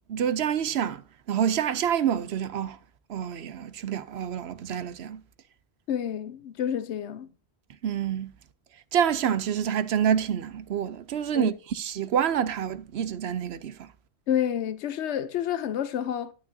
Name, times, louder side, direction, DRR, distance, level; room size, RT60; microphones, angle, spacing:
voice 1, 0.1-2.8 3.1-5.2 7.8-8.3 8.9-13.9, right 9 dB, 75° right, 0.9 m, -27 dB
voice 2, 5.9-7.3 11.3-11.5 14.3-16.3, left 9 dB, 85° left, 1.0 m, -29 dB
12.0 x 9.5 x 2.7 m
omnidirectional pair, 1.1 m